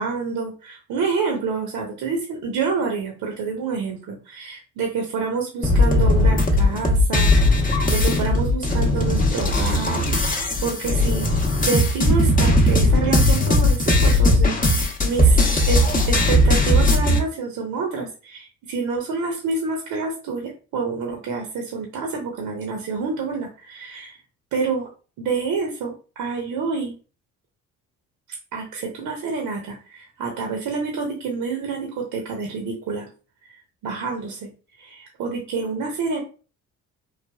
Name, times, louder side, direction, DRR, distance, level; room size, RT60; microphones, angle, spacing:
voice 1, 0.0-11.3 11.6-24.1 24.5-24.9 25.2-26.9 28.5-33.1 33.8-34.5 34.8-36.2, right 4 dB, 60° right, 1 dB, 0.9 m, -28 dB
sound 1, 5.6-17.2, left 1 dB, 20° left, 0.8 m, -18 dB
3.3 x 2.2 x 2.3 m, 0.36 s
hypercardioid pair, 50°, 39 cm